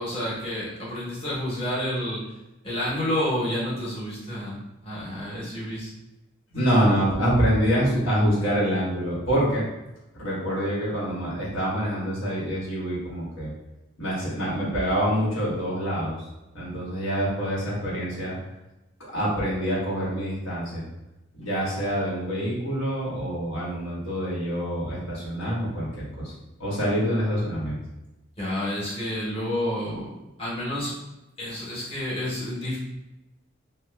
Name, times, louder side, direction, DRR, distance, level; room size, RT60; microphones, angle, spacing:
voice 1, 0.0-2.2 2.6-5.9 6.5-6.7 28.4-30.1 30.4-30.9 31.4-32.8, left 1 dB, 25° left, -7 dB, 1.0 m, -29 dB
voice 2, 6.5-9.6 10.1-13.5 14.0-16.2 16.5-18.3 19.1-20.8 21.3-26.3 26.6-27.8, equal, 80° left, -7 dB, 1.2 m, -26 dB
3.0 x 2.2 x 3.3 m, 0.98 s
head